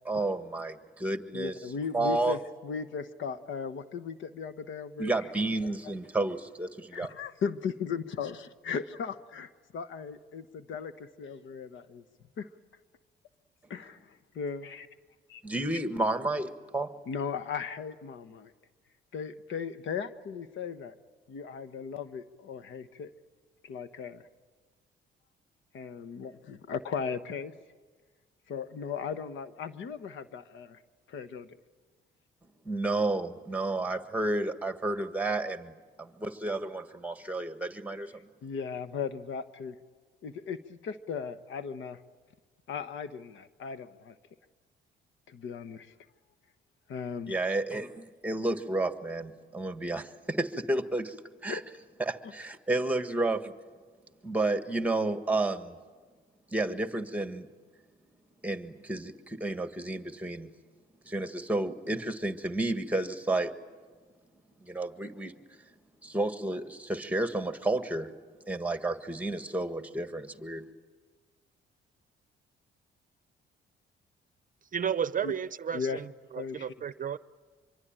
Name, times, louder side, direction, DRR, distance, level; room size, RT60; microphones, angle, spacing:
voice 1, 0.0-1.5 1.9-2.4 5.0-7.1 15.4-16.9 32.6-38.1 47.3-51.1 51.4-51.6 52.0-53.5 54.2-55.8 56.5-57.5 58.4-60.5 61.0-63.5 64.6-65.3 66.0-68.1 68.5-70.6, right 2 dB, 5° right, 1.7 m, -31 dB
voice 2, 1.3-5.2 5.6-5.7 6.9-9.5 9.7-12.0 12.4-12.5 13.7-14.9 15.3-15.4 17.1-18.5 19.1-20.9 21.3-23.1 23.6-24.2 25.7-27.5 28.5-30.8 31.1-31.6 38.4-39.8 40.2-42.0 42.7-44.2 45.3-45.9 46.9-47.4 51.5-51.6 75.2-75.3 75.7-76.0 76.4-76.7, left 6 dB, 75° left, 1.2 m, -37 dB
voice 3, 74.7-76.1 76.3-77.2, right 8 dB, 45° right, 0.7 m, -32 dB
25.0 x 24.0 x 9.1 m
cardioid pair, 90°, 20 cm